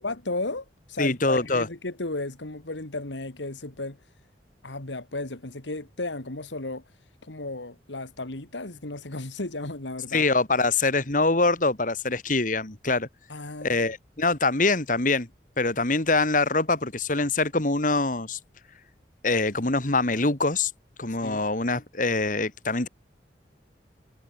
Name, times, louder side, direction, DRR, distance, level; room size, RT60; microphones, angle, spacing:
voice 1, 0.0-4.0 4.6-6.8 7.2-10.3 13.3-13.8 21.2-21.4, left 2 dB, 90° left, 2.3 m, -34 dB
voice 2, 1.0-1.7 10.1-13.1 13.6-15.3 15.6-18.4 19.2-20.7 21.0-22.9, left 3 dB, 45° left, 2.3 m, -24 dB
head